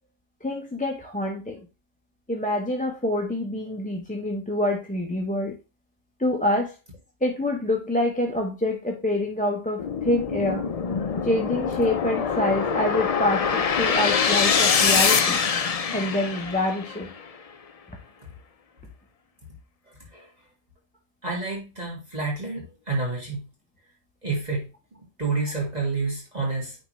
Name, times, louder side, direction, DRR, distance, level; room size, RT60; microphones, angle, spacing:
voice 1, 0.4-1.6 2.3-5.6 6.2-6.7 7.2-10.6 11.2-15.4 15.9-17.1, left 1 dB, 10° left, 0 dB, 0.8 m, -26 dB
sound 1, 9.8-17.1, left 6 dB, 45° left, 0.5 m, -24 dB
voice 2, 19.9-20.3 21.2-23.5 24.2-24.7 25.2-26.8, right 3 dB, 35° right, -2 dB, 1.8 m, -29 dB
9.7 x 3.7 x 3.1 m, 0.28 s
omnidirectional pair, 1.2 m